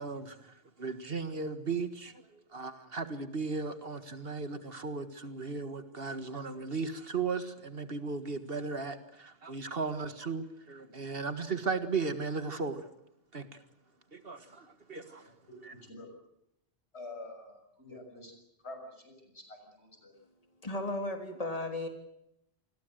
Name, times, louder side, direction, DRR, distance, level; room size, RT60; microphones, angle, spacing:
voice 1, 0.0-12.9 13.3-13.5 14.1-15.3 15.6-15.7, right 4 dB, 60° right, 10 dB, 1.9 m, -36 dB
voice 2, 15.2-16.1 16.9-18.3 18.6-20.1, left 2 dB, 75° left, 5 dB, 7.0 m, -48 dB
voice 3, 20.6-21.9, left 1 dB, 35° left, 5 dB, 3.4 m, -35 dB
27.5 x 21.0 x 7.9 m, 0.81 s
omnidirectional pair, 1.1 m